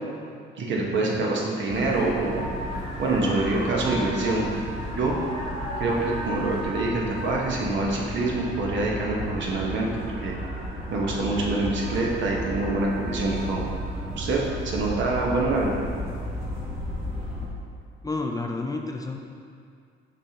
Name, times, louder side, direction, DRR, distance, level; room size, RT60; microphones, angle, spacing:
voice 1, 0.6-2.5 3.0-4.5 4.9-5.2 5.8-9.9 10.2-10.3 10.9-13.6 14.2-14.4 14.6-15.7, right 2 dB, 70° right, -2 dB, 1.1 m, -25 dB
sound 1, 1.7-17.5, equal, 30° right, 1.4 m, -33 dB
voice 2, 18.0-19.2, left 3 dB, 20° left, 3 dB, 0.4 m, -30 dB
6.5 x 5.0 x 2.9 m, 2.3 s
cardioid pair, 90°, 20 cm